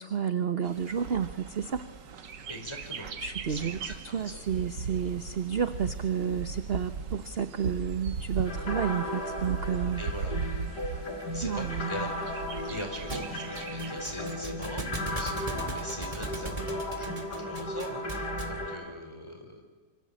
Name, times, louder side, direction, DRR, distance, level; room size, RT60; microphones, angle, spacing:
voice 1, 0.0-1.8 3.2-3.8 4.1-10.0 11.4-12.1, right 7 dB, 45° right, 11 dB, 1.0 m, -31 dB
Bird, 0.6-14.3, right 5 dB, 80° right, 2.1 m, -38 dB
voice 2, 2.5-3.1 3.5-4.4 10.0-10.4 11.3-19.6, left 1 dB, 15° left, 4 dB, 4.3 m, -41 dB
sound 1, 8.5-18.8, left 1 dB, 70° left, 4.5 m, -36 dB
Thump thud, 13.1-18.7, right 2 dB, 20° right, 2.4 m, -38 dB
26.5 x 25.0 x 8.6 m, 1.4 s
omnidirectional pair, 1.8 m